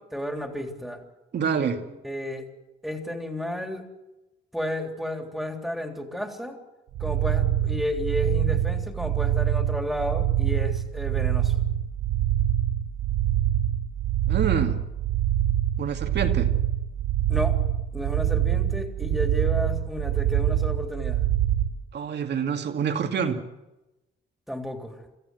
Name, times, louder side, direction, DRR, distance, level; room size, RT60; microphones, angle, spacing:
voice 1, 0.1-1.0 1.6-1.7 2.0-2.4 2.8-3.8 4.5-6.6 7.0-11.6 17.3-17.6 17.9-21.2 24.5-25.0, left 1 dB, ahead, 4 dB, 3.4 m, -32 dB
voice 2, 1.3-1.8 14.3-14.8 15.8-16.5 21.9-23.4, right 7 dB, 60° right, 5 dB, 2.4 m, -27 dB
sound 1, 6.9-21.7, right 12 dB, 80° right, 1.3 m, -25 dB
26.0 x 14.0 x 7.9 m, 1.0 s
cardioid pair, 90°, 20 cm